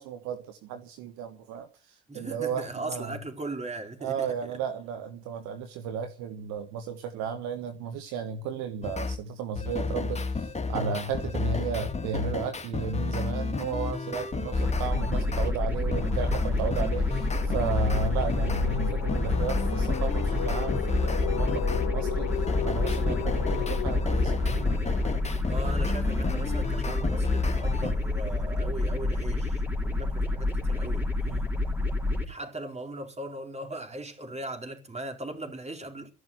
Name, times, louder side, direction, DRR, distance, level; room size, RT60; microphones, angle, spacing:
voice 1, 0.0-1.7 2.1-3.2 4.0-22.3 22.6-24.7 31.2-31.4, right 6 dB, 65° right, 1.4 m, -34 dB
voice 2, 2.1-4.6 10.7-10.8 17.9-18.2 25.5-31.4 32.2-36.1, right 2 dB, 20° right, 4.2 m, -39 dB
sound 1, 8.8-9.2 9.6-15.5 15.9-21.9 22.3-27.9, left 4 dB, 20° left, 2.3 m, -31 dB
sound 2, 14.4-25.9, left 12 dB, 60° left, 1.0 m, -38 dB
sound 3, 14.5-32.2, left 2 dB, 5° right, 4.1 m, -29 dB
14.0 x 11.0 x 7.9 m
figure-of-eight pair, 50°, 30 cm